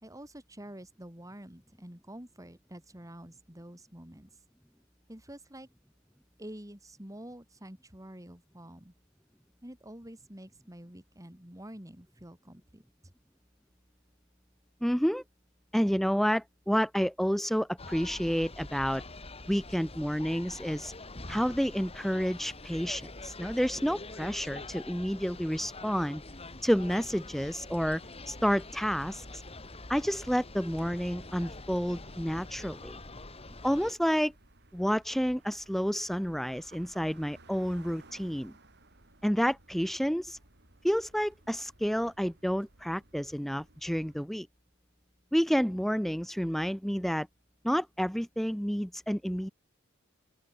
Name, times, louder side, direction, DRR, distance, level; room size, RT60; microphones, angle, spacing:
voice 1, 0.0-4.3 5.1-5.7 6.4-8.9 9.6-13.1, right 1 dB, 15° right, 3.5 m, -48 dB
voice 2, 14.8-15.2 15.7-19.0 19.5-20.9 21.3-26.2 26.6-28.0 28.3-29.4 29.9-33.0 33.6-34.3 34.7-38.5 39.2-40.4 40.8-44.5 45.3-47.3 47.6-49.5, equal, ahead, 1.1 m, -30 dB
sound 1, 17.8-33.9, left 2 dB, 30° left, 3.5 m, -45 dB
sound 2, 26.8-44.3, right 2 dB, 55° right, 7.5 m, -60 dB
open air
head